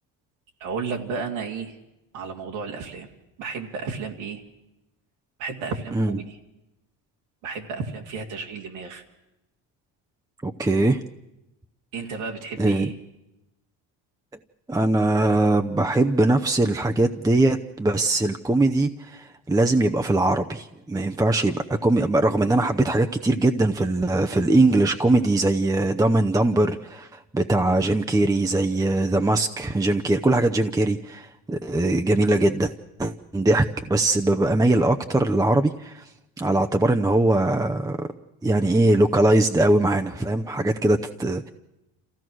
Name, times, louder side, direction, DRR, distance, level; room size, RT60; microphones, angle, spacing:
voice 1, 0.6-1.7 2.1-3.1 3.4-4.4 5.4-6.4 7.4-9.0 11.9-12.9, right 5 dB, 80° right, 1 dB, 2.4 m, -32 dB
voice 2, 10.4-11.0 12.6-12.9 14.7-32.7 33.0-36.0 36.4-38.1 38.4-41.5, right 2 dB, 10° right, 6 dB, 0.7 m, -21 dB
26.5 x 15.5 x 6.2 m, 0.95 s
supercardioid pair, 90°, 46 cm